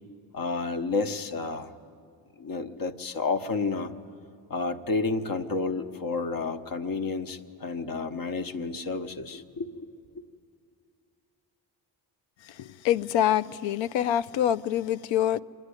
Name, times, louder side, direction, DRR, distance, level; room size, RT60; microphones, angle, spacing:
voice 1, 0.3-1.7 2.4-3.9 4.5-9.9, left 4 dB, 45° left, 1.1 m, -30 dB
voice 2, 12.6-15.4, left 11 dB, 70° left, 0.6 m, -25 dB
25.0 x 10.5 x 9.7 m
cardioid pair, 75°, 47 cm